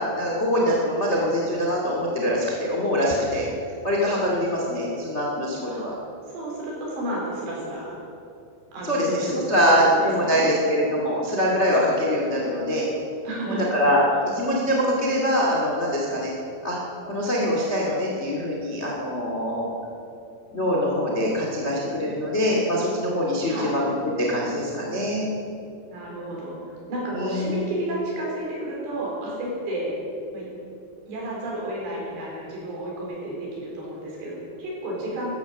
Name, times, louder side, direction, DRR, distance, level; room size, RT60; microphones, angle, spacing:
voice 1, 0.0-3.5 3.8-5.9 8.8-12.9 13.5-16.3 16.6-16.8 17.0-19.7 20.5-25.3 27.1-27.5, equal, 35° left, -2 dB, 1.0 m, -23 dB
voice 2, 6.3-7.9 8.7-10.5 13.2-13.7 23.5-23.8 25.9-29.9 30.3-30.5 31.1-35.3, right 1 dB, 65° right, -4 dB, 6.3 m, -31 dB
14.5 x 13.5 x 7.1 m, 2.6 s
omnidirectional pair, 5.3 m